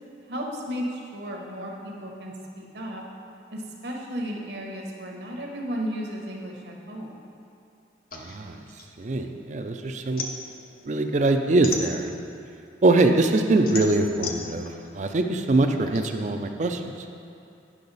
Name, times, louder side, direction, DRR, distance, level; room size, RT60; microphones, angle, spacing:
voice 1, 0.3-3.0 3.5-7.2, equal, 65° right, 0 dB, 1.0 m, -34 dB
sound 1, 8.1-9.6 9.9-12.5 12.9-16.1, left 4 dB, 50° left, 0.6 m, -36 dB
voice 2, 8.1-8.6 9.0-10.2 10.9-12.1 12.8-14.7 14.9-16.8, right 2 dB, 40° right, 6 dB, 0.4 m, -23 dB
8.5 x 5.9 x 4.0 m, 2.5 s
head